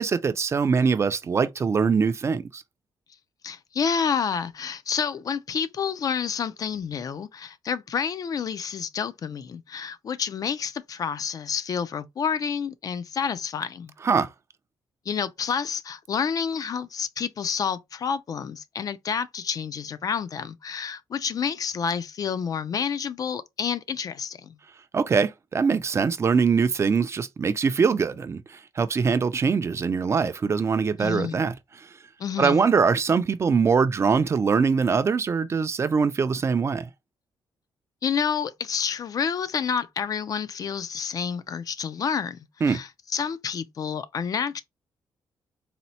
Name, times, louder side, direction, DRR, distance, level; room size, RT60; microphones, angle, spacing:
voice 1, 0.0-2.6 14.0-14.3 24.9-28.4 28.8-31.5 32.4-36.9 42.6-42.8, right 5 dB, 35° right, 0.3 m, -22 dB
voice 2, 3.4-13.9 15.1-24.6 31.0-31.4 32.2-32.6 38.0-42.4 42.7-44.6, left 6 dB, 45° left, 0.4 m, -29 dB
4.1 x 2.0 x 2.7 m
cardioid pair, 110°, 8 cm